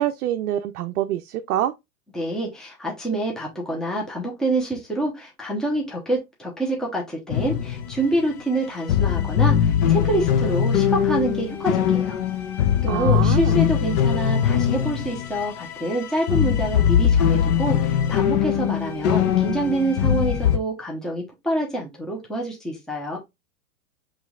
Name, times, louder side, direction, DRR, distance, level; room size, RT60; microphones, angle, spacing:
voice 1, 0.0-1.7 12.9-13.5, right 12 dB, 70° right, 0.6 m, -25 dB
voice 2, 2.1-12.2 12.8-23.2, right 1 dB, ahead, 0.9 m, -27 dB
sound 1, 7.3-8.3 8.5-8.6 8.8-20.6, left 9 dB, 30° left, 0.4 m, -21 dB
5.5 x 3.2 x 2.4 m
hypercardioid pair, 120°, 45 cm